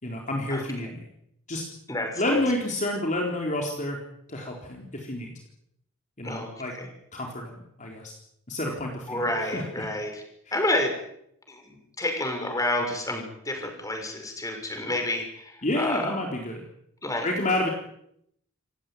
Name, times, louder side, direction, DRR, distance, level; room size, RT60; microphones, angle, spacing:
voice 1, 0.0-1.0 1.5-1.6 2.1-4.0 4.3-5.3 6.2-6.7 7.1-8.1 8.5-9.2 9.5-9.6 15.6-16.6 17.2-17.7, left 1 dB, 35° left, 1 dB, 4.0 m, -29 dB
voice 2, 1.9-2.4 6.2-6.9 9.1-10.2 10.5-10.9 11.5-16.2 17.0-17.3, left 1 dB, 15° left, 4 dB, 6.3 m, -29 dB
28.0 x 16.5 x 9.4 m, 0.74 s
head